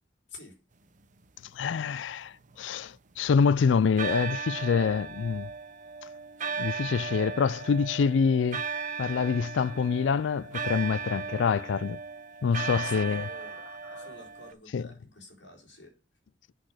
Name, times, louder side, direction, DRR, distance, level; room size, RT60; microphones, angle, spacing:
voice 1, 0.3-0.6 12.8-13.6 13.9-16.0, left 2 dB, 70° left, 4.0 m, -49 dB
voice 2, 1.5-5.5 6.6-8.6 9.0-12.0 12.4-13.3 13.9-14.1 14.7-14.9, left 6 dB, 85° left, 0.4 m, -26 dB
sound 1, 1.9-3.4 4.0-14.5, right 5 dB, 45° right, 0.9 m, -37 dB
8.5 x 6.0 x 6.4 m
head